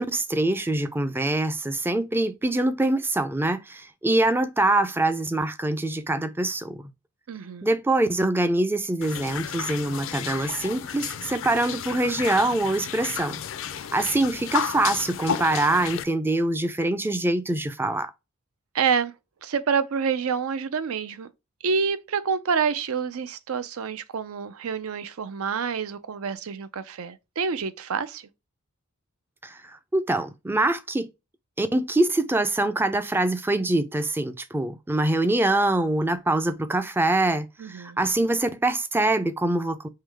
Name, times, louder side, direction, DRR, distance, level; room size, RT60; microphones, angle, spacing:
voice 1, 0.0-6.9 7.6-13.4 13.9-18.1 29.4-31.1 31.6-39.9, right 2 dB, 10° right, 0.4 m, -24 dB
voice 2, 7.3-7.7 18.7-19.1 19.4-21.3 21.6-28.3 37.6-38.0, right 6 dB, 80° right, 0.5 m, -27 dB
sound 1, 9.0-16.0, left 8 dB, 60° left, 0.4 m, -32 dB
3.8 x 3.0 x 3.3 m
head